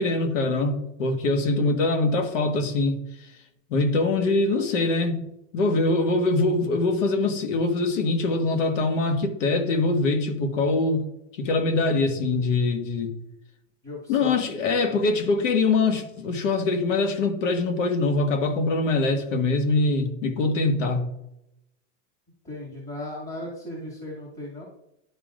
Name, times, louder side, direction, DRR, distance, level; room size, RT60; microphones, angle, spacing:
voice 1, 0.0-3.0 3.7-5.3 5.5-11.1 11.3-13.1 14.1-21.1, left 3 dB, 85° left, 1.6 m, -23 dB
voice 2, 13.8-14.4 22.4-24.7, left 1 dB, 25° left, 2.4 m, -36 dB
12.0 x 5.6 x 2.5 m
supercardioid pair, 150°, 37 cm